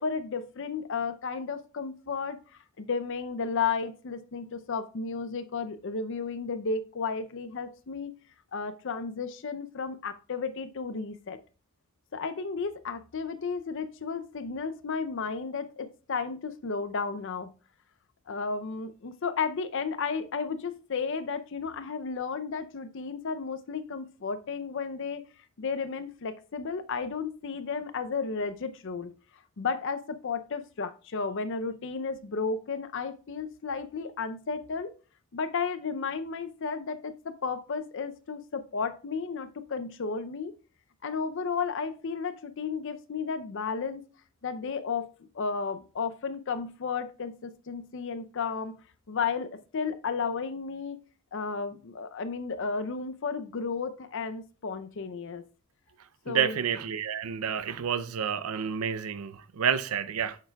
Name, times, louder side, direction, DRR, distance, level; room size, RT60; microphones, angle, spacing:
voice 1, 0.0-2.4 2.8-8.1 8.5-11.4 12.1-17.5 18.3-25.2 25.6-29.1 29.6-34.9 35.3-40.5 41.0-44.0 44.4-45.1 45.3-48.7 49.1-51.0 51.3-55.4 56.3-56.6, left 5 dB, 55° left, 0.5 m, -33 dB
voice 2, 56.3-60.4, right 7 dB, 75° right, 0.5 m, -29 dB
7.9 x 6.6 x 2.3 m
head